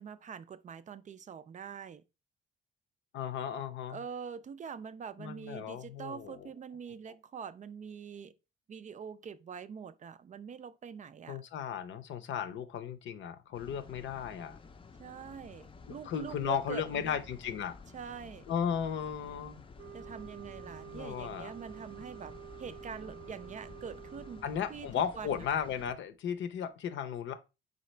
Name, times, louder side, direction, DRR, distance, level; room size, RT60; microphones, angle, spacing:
voice 1, 0.0-2.0 3.9-8.3 8.7-11.4 15.0-17.2 17.9-18.5 19.9-22.3 22.6-24.9 25.1-25.5, right 7 dB, 40° right, 0.4 m, -44 dB
voice 2, 3.1-4.0 5.2-6.5 11.3-14.6 15.9-17.8 18.5-19.6 20.8-21.5 24.4-27.3, left 8 dB, 70° left, 0.7 m, -35 dB
sound 1, 13.5-25.9, left 4 dB, 25° left, 0.5 m, -52 dB
sound 2, 19.8-24.7, right 11 dB, 80° right, 0.6 m, -49 dB
4.1 x 3.8 x 3.2 m
cardioid pair, 90°, 20 cm